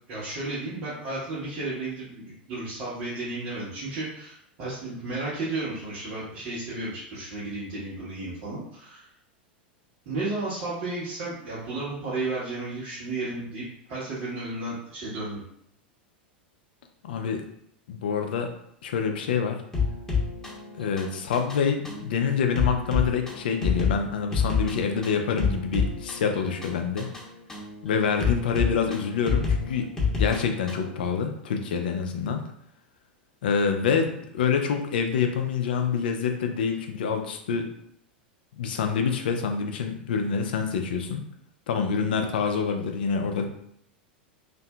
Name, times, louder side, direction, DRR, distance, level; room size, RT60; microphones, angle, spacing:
voice 1, 0.1-9.0 10.0-15.4, right 2 dB, 50° right, -10 dB, 1.0 m, -33 dB
voice 2, 17.0-17.4 17.9-18.5 18.8-19.6 20.8-27.1 27.8-29.9 30.2-32.4 33.4-37.7 38.5-41.2 41.7-43.5, left 6 dB, 65° left, 5 dB, 0.4 m, -26 dB
sound 1, 19.7-30.9, left 5 dB, 10° left, 0.8 m, -29 dB
2.6 x 2.5 x 2.2 m, 0.70 s
figure-of-eight pair, 90°, 6 cm